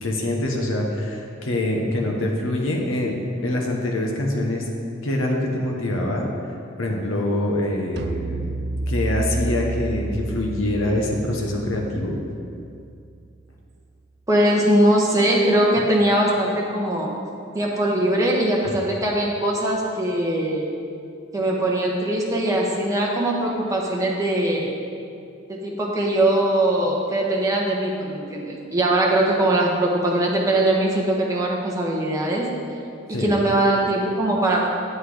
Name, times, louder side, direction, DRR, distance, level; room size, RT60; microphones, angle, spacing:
voice 1, 0.0-4.7 5.0-6.3 6.8-8.5 8.9-12.2 33.1-33.3, left 1 dB, 85° left, 0 dB, 1.1 m, -25 dB
sound 1, 8.0-13.4, right 2 dB, 55° right, 0.4 m, -30 dB
voice 2, 14.3-17.1 17.5-20.7 21.3-24.7 25.5-32.5 33.2-34.7, right 1 dB, 15° right, -3 dB, 1.3 m, -21 dB
8.1 x 8.0 x 5.0 m, 2.5 s
head